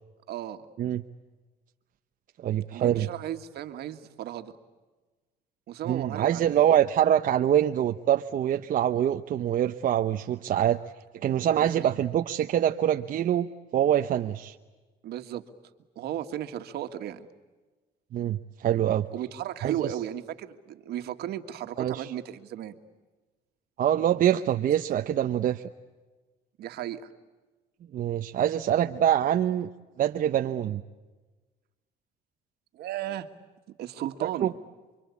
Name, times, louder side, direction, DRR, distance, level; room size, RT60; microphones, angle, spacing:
voice 1, 0.3-0.7 2.7-4.5 5.7-6.8 11.6-11.9 15.0-15.4 16.0-17.3 19.1-22.8 26.6-27.0 32.7-33.3 33.7-34.5, right 11 dB, 70° right, 8 dB, 1.8 m, -35 dB
voice 2, 2.4-3.1 5.9-10.8 11.2-14.5 18.1-19.1 19.6-19.9 21.8-22.1 23.8-25.6 27.9-29.7 30.0-30.8 34.2-34.5, right 10 dB, 55° right, 5 dB, 0.9 m, -25 dB
29.0 x 24.5 x 8.5 m, 1.2 s
cardioid pair, 110°, 17 cm